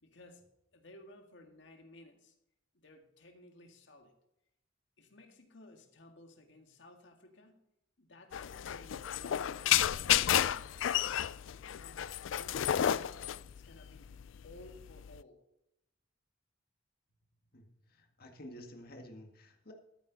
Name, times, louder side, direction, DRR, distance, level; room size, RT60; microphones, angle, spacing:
voice 1, 0.0-2.4 2.7-4.1 5.0-7.7 8.0-10.9 11.5-13.1 13.5-14.1 14.4-15.4, left 2 dB, 70° left, 4 dB, 2.0 m, -57 dB
Dog whining and jumping on glass, 8.3-15.2, left 11 dB, 85° left, 0.4 m, -31 dB
voice 2, 17.5-19.7, equal, 50° left, 3 dB, 1.9 m, -51 dB
13.5 x 9.3 x 4.1 m, 0.83 s
head